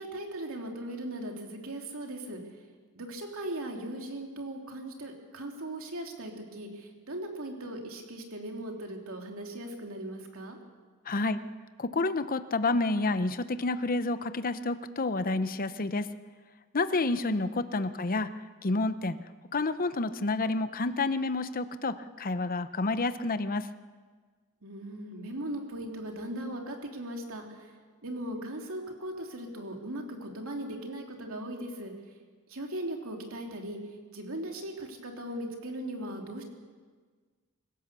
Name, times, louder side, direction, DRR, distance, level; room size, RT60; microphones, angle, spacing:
voice 1, 0.0-2.4 2.9-10.6 17.0-17.3 24.6-27.7 28.0-31.9 32.5-33.8 34.1-36.4, right 1 dB, 65° right, 2 dB, 3.1 m, -38 dB
voice 2, 11.1-11.4 11.8-16.1 16.7-18.3 18.6-19.2 19.5-23.7, left 3 dB, 40° left, 12 dB, 0.8 m, -29 dB
25.0 x 16.0 x 6.9 m, 1.5 s
head